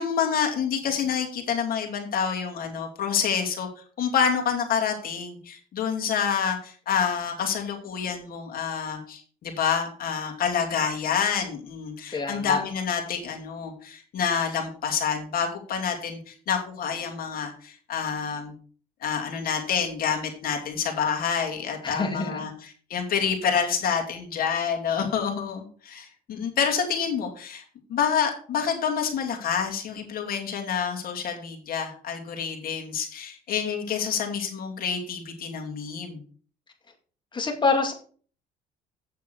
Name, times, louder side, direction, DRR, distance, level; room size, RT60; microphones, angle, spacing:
voice 1, 0.0-18.5 19.0-27.6 27.9-36.2, left 7 dB, 60° left, 2 dB, 2.7 m, -28 dB
voice 2, 12.1-12.6 21.8-22.5 37.3-37.9, left 4 dB, 25° left, 3 dB, 2.3 m, -26 dB
8.7 x 6.9 x 4.7 m, 0.43 s
cardioid pair, 110°, 17 cm